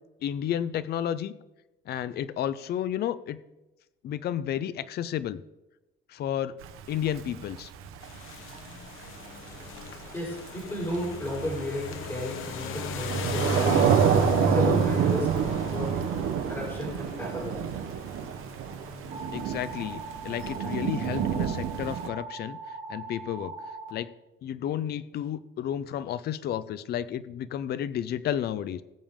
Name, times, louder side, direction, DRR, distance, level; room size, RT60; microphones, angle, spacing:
voice 1, 0.2-1.3 1.9-3.4 4.0-5.4 6.1-6.5 6.9-7.7 19.3-23.5 23.9-24.1 24.4-28.8, left 10 dB, 50° left, 15 dB, 0.6 m, -32 dB
Thunder / Rain, 6.6-22.1, right 8 dB, 80° right, 1.2 m, -28 dB
sound 1, 8.0-20.5, left 4 dB, 70° left, 1.3 m, -36 dB
voice 2, 10.1-15.3 15.7-15.9 16.5-17.6, left 1 dB, 10° left, -4 dB, 5.3 m, -34 dB
sound 2, 19.1-23.9, right 3 dB, 40° right, 3.9 m, -41 dB
20.5 x 7.1 x 3.7 m, 1.0 s
cardioid pair, 160°, 21 cm